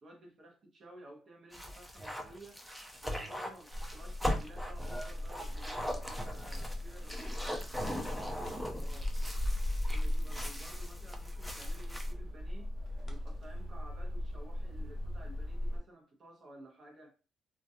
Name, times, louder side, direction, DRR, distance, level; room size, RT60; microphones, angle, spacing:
voice 1, 0.0-2.6 3.0-9.1 9.9-12.7 13.1-17.1, right 1 dB, 50° right, 0.6 m, -54 dB
sound 1, 1.5-12.1, equal, 5° right, 0.5 m, -40 dB
sound 2, 3.7-15.8, left 1 dB, 70° right, 1.2 m, -38 dB
sound 3, 8.4-8.9 9.2-9.4 9.8-10.3 11.0-11.1 11.5-12.3 13.0-13.8 15.3-15.7 16.0-16.1, left 2 dB, 50° left, 0.6 m, -56 dB
2.3 x 2.2 x 2.6 m
cardioid pair, 90°, 0 cm